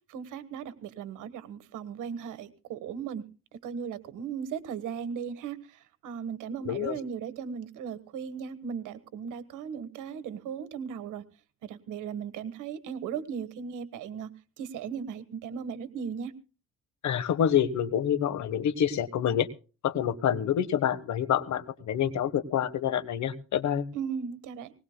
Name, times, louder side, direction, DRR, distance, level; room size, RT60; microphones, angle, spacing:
voice 1, 0.1-3.2 3.6-11.2 11.6-14.3 14.6-16.3 23.9-24.7, right 7 dB, 90° right, 13 dB, 1.4 m, -37 dB
voice 2, 6.6-7.0 17.0-19.5 19.8-23.8, left 9 dB, 70° left, 14 dB, 1.3 m, -27 dB
20.0 x 19.5 x 2.2 m, 0.35 s
cardioid pair, 90°, 30 cm